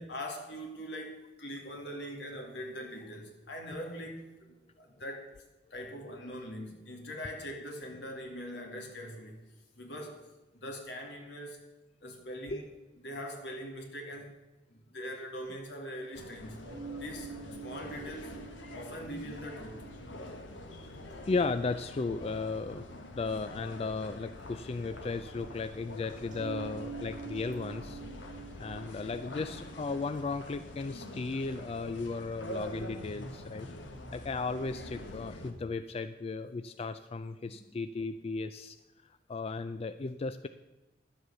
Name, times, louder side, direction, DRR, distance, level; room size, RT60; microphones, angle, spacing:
voice 1, 0.0-5.3 5.7-9.4 9.7-11.6 12.0-12.7 13.0-14.3 14.7-16.6 17.0-18.4 18.7-19.9 37.5-37.8, equal, 65° left, 2 dB, 2.3 m, -42 dB
sound 1, 16.1-35.5, left 1 dB, 85° left, 1.4 m, -45 dB
sound 2, 16.6-21.8 22.0-22.1 22.5-22.6 22.9-23.0 26.3-30.5, right 5 dB, 40° right, 2.1 m, -47 dB
voice 2, 21.1-22.8 23.1-33.7 34.1-38.8 39.3-40.5, left 3 dB, 30° left, 11 dB, 0.3 m, -35 dB
11.5 x 7.9 x 6.8 m, 1.0 s
head